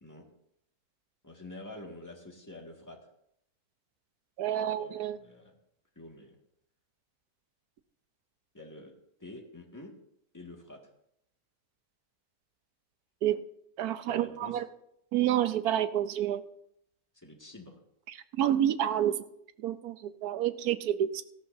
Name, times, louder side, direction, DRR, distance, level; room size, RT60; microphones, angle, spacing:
voice 1, 1.2-3.0 4.4-5.5 6.0-6.4 8.5-8.9 9.2-10.0 10.3-10.8 14.1-14.6 17.1-17.8, left 1 dB, 10° left, 0 dB, 1.9 m, -47 dB
voice 2, 4.4-5.2 13.2-13.4 13.8-14.6 15.1-16.4 18.4-19.2 19.6-21.2, right 11 dB, 85° right, 12 dB, 1.2 m, -28 dB
17.5 x 13.5 x 2.7 m, 0.75 s
omnidirectional pair, 1.6 m